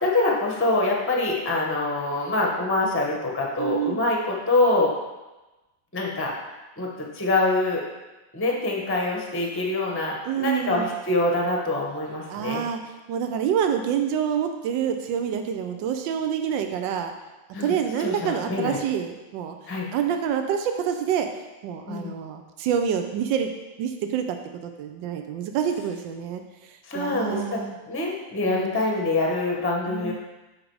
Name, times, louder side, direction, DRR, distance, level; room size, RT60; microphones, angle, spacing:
voice 1, 0.0-4.9 5.9-6.3 6.8-6.9 7.1-7.8 8.3-12.6 17.5-18.8 19.7-19.9 21.9-22.1 26.8-30.1, left 2 dB, 10° left, -1 dB, 0.7 m, -25 dB
voice 2, 3.6-4.0 10.3-10.9 12.3-12.8 13.1-17.1 17.6-19.6 19.9-21.3 21.6-23.5 23.8-24.4 24.6-26.4 26.9-27.8 28.4-28.8 29.9-30.1, right 8 dB, 80° right, 6 dB, 1.3 m, -27 dB
7.4 x 5.1 x 4.7 m, 1.1 s
omnidirectional pair, 2.0 m